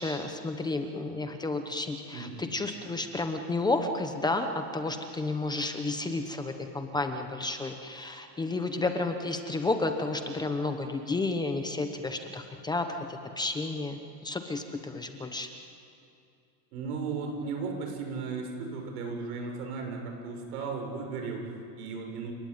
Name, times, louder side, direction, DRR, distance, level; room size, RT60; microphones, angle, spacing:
voice 1, 0.0-15.5, left 2 dB, 10° left, 6 dB, 0.9 m, -31 dB
voice 2, 16.7-22.3, right 4 dB, 80° right, 3 dB, 6.6 m, -36 dB
30.0 x 18.0 x 9.5 m, 2.5 s
supercardioid pair, 165°, 45 cm